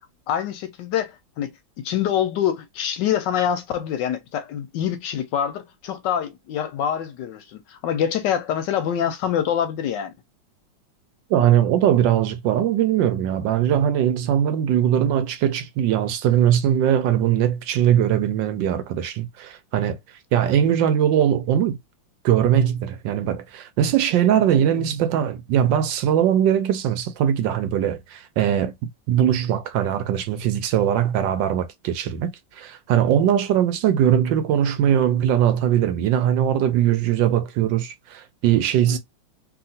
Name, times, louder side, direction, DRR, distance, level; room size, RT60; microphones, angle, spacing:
voice 1, 0.3-1.5 1.8-10.1 38.9-39.0, left 9 dB, 75° left, 1.1 m, -25 dB
voice 2, 11.3-20.0 20.3-21.8 22.2-39.0, right 10 dB, 75° right, 1.2 m, -20 dB
2.9 x 2.8 x 2.6 m
omnidirectional pair, 2.1 m